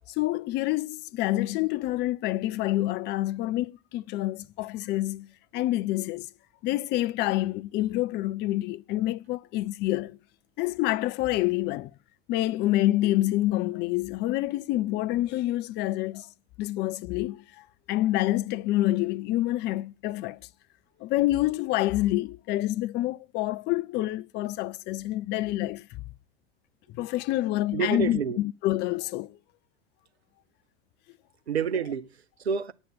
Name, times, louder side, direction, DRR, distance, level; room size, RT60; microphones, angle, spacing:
voice 1, 0.2-6.3 6.6-10.2 10.6-11.9 12.3-16.3 16.6-20.4 21.0-26.0 27.0-29.4, left 16 dB, 35° left, 0.5 m, -27 dB
voice 2, 27.7-28.4 31.5-32.7, right 6 dB, 80° right, 0.7 m, -29 dB
9.2 x 7.0 x 8.2 m
figure-of-eight pair, 75°, 31 cm